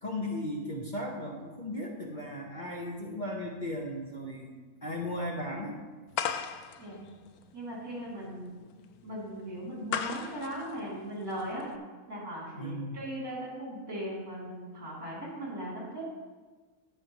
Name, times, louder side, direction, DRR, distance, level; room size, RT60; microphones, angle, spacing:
voice 1, 0.0-4.5 4.8-5.8 12.6-13.0, left 1 dB, 35° left, -1 dB, 1.2 m, -36 dB
sound 1, 6.1-11.8, left 8 dB, 85° left, 1.1 m, -38 dB
voice 2, 6.8-7.1 7.5-8.6 9.0-11.7 12.1-16.0, right 1 dB, 70° right, -5 dB, 3.9 m, -38 dB
19.0 x 6.4 x 3.1 m, 1.3 s
omnidirectional pair, 1.5 m